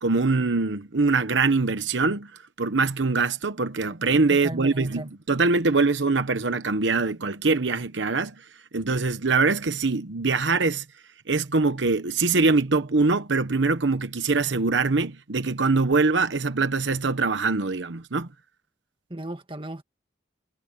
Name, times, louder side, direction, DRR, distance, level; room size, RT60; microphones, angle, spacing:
voice 1, 0.0-2.3 2.6-8.3 8.7-10.8 11.3-18.3, right 3 dB, 80° right, 1.0 m, -23 dB
voice 2, 4.4-5.1 19.1-19.8, right 1 dB, 25° right, 1.8 m, -35 dB
head